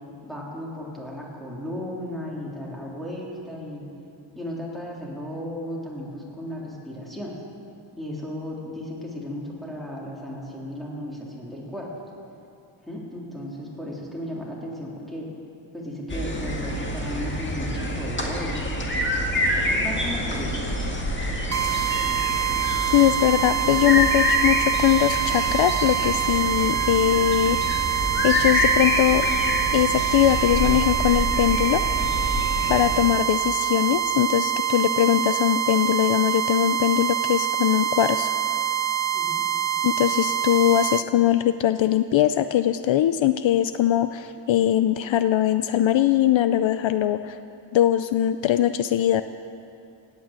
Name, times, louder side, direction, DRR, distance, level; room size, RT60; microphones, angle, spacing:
voice 1, 0.2-3.9 4.3-7.3 8.0-11.9 12.8-15.3 15.7-18.8 19.7-20.6 39.1-39.4, left 1 dB, ahead, -4 dB, 3.4 m, -35 dB
sound 1, 16.1-33.0, equal, 25° left, 1.8 m, -26 dB
sound 2, 21.5-41.1, right 10 dB, 35° right, 0.5 m, -25 dB
voice 2, 22.9-27.6 28.2-29.3 29.7-31.8 32.7-38.3 39.8-47.4 47.7-49.2, left 12 dB, 65° left, 11 dB, 0.6 m, -21 dB
17.0 x 9.1 x 8.8 m, 2.6 s
wide cardioid pair, 140°, 49 cm